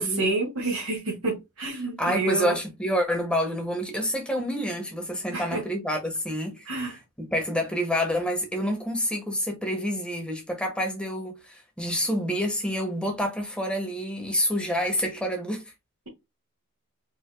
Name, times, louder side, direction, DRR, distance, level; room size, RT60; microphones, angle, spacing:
voice 1, 0.0-2.6 5.3-5.6 6.7-7.0, right 2 dB, 75° right, 1.9 m, -28 dB
voice 2, 2.0-6.9 7.2-15.7, equal, 5° left, 1.5 m, -28 dB
4.8 x 4.2 x 2.3 m
head